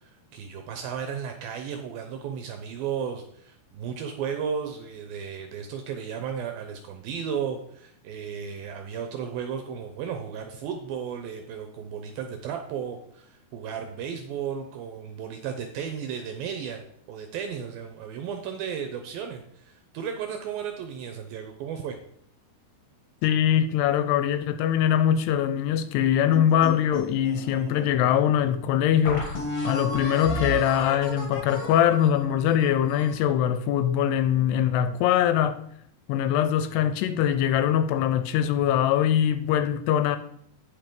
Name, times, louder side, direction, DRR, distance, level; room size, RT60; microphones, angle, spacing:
voice 1, 0.0-16.8 17.1-22.0, right 7 dB, 75° right, 2.2 m, -34 dB
voice 2, 23.2-29.3 29.6-35.6 36.1-40.2, left 10 dB, 80° left, 2.5 m, -22 dB
sound 1, 26.3-27.9 28.4-28.5 29.0-33.2, left 1 dB, 50° left, 1.8 m, -33 dB
9.2 x 5.9 x 5.2 m
omnidirectional pair, 5.0 m